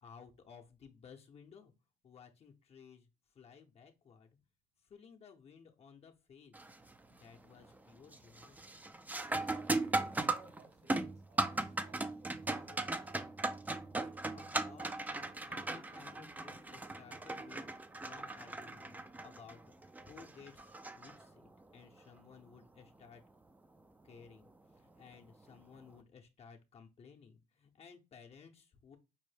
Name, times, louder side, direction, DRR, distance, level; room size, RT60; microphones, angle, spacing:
voice 1, 0.0-1.7 2.0-3.1 3.3-4.3 4.8-6.5 7.1-8.6 14.3-15.1 15.4-17.7 18.0-23.2 24.0-24.5 24.8-29.0, left 6 dB, 35° left, 2 dB, 0.6 m, -57 dB
sound 1, 6.5-6.9 7.3-7.8 8.1-21.6 24.1-24.2 25.1-25.3, right 2 dB, 10° right, 0.3 m, -38 dB
voice 2, 9.2-13.2, right 2 dB, 65° right, 0 dB, 1.4 m, -62 dB
5.3 x 2.0 x 3.2 m, 0.27 s
cardioid pair, 110°, 17 cm